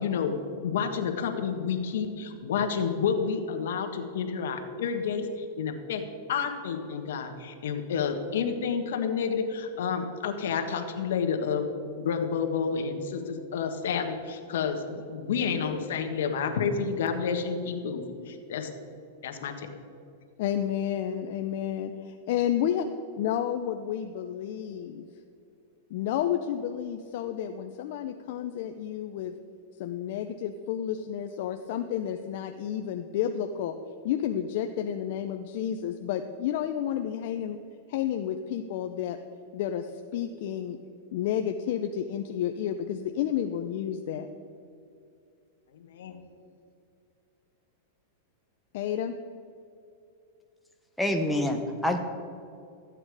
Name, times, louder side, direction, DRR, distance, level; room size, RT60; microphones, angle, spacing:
voice 1, 0.0-6.0 6.3-11.7 11.9-18.7 19.2-19.7 45.7-46.2, left 6 dB, 80° left, 5 dB, 1.4 m, -30 dB
voice 2, 20.4-22.9 23.2-25.0 25.9-29.3 29.8-33.8 34.0-37.6 37.9-39.2 39.5-40.8 41.1-44.3 48.7-49.1, left 10 dB, 60° left, 6 dB, 0.6 m, -31 dB
voice 3, 51.0-52.0, left 1 dB, 5° left, 2 dB, 1.0 m, -26 dB
14.5 x 8.7 x 4.9 m, 2.6 s
supercardioid pair, 140°, 0 cm